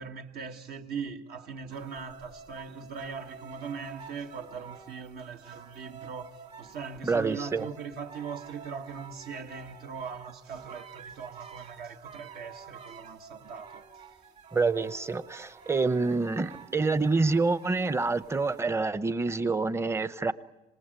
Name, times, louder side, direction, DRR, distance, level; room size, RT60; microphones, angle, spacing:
voice 1, 0.0-13.9, right 6 dB, 70° right, 1.4 m, -40 dB
sound 1, 1.7-18.6, right 5 dB, 40° right, 2.1 m, -49 dB
voice 2, 7.0-7.7 14.5-20.3, right 3 dB, 15° right, 0.8 m, -27 dB
26.5 x 19.5 x 9.0 m
cardioid pair, 110°, 17 cm